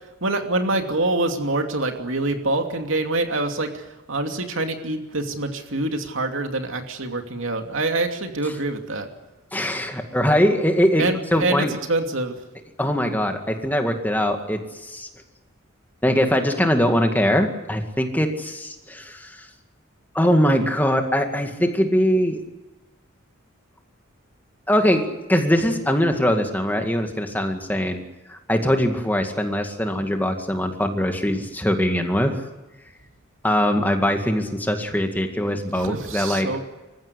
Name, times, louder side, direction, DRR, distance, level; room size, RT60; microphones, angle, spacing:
voice 1, 0.2-9.1 11.0-12.4 35.7-36.6, right 2 dB, 70° right, 5 dB, 2.7 m, -25 dB
voice 2, 9.5-11.7 12.8-15.1 16.0-19.5 20.1-22.4 24.7-28.0 28.3-32.4 33.4-36.5, equal, 10° left, 4 dB, 2.1 m, -22 dB
26.0 x 15.0 x 9.9 m, 1.1 s
head